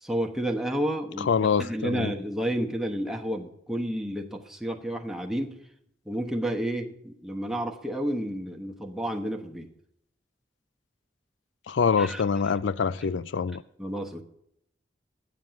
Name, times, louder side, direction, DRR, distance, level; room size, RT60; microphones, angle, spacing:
voice 1, 0.0-5.6 6.0-9.7 12.0-12.2 13.8-14.2, right 1 dB, ahead, 1.0 m, -31 dB
voice 2, 1.2-2.1 11.7-13.6, left 6 dB, 85° left, 0.4 m, -25 dB
9.2 x 7.4 x 7.4 m
head